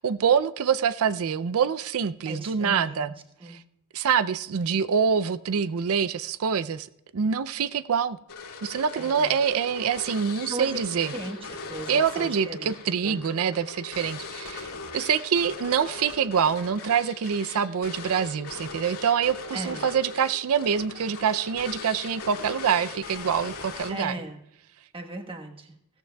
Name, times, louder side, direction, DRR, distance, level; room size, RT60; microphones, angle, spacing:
voice 1, 0.0-3.1 3.5-3.6 3.9-6.9 7.1-8.2 8.6-11.1 11.9-24.1, right 7 dB, 70° right, 15 dB, 0.4 m, -25 dB
voice 2, 2.3-3.1 3.4-3.6 9.0-9.3 10.5-10.7 11.1-12.8 13.0-13.2 19.5-19.9 23.9-24.4 24.9-25.7, right 2 dB, 25° right, 3 dB, 1.3 m, -37 dB
sound 1, 8.3-24.2, left 4 dB, 90° left, 2.1 m, -40 dB
16.5 x 14.0 x 2.3 m, 0.84 s
head